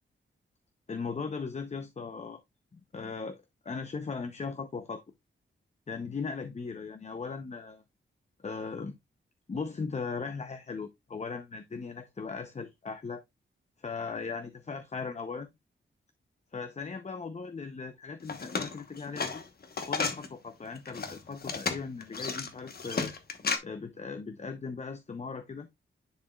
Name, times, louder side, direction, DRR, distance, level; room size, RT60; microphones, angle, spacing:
voice 1, 0.9-2.4 2.7-5.0 5.9-7.8 8.4-8.9 9.5-13.2 13.8-15.5 16.5-19.4 19.9-23.1 23.6-25.7, left 5 dB, 35° left, 0.7 m, -38 dB
sound 1, 18.2-20.3 20.8-23.6, left 4 dB, 50° left, 1.1 m, -33 dB
10.0 x 4.2 x 2.3 m
wide cardioid pair, 95°, 20 cm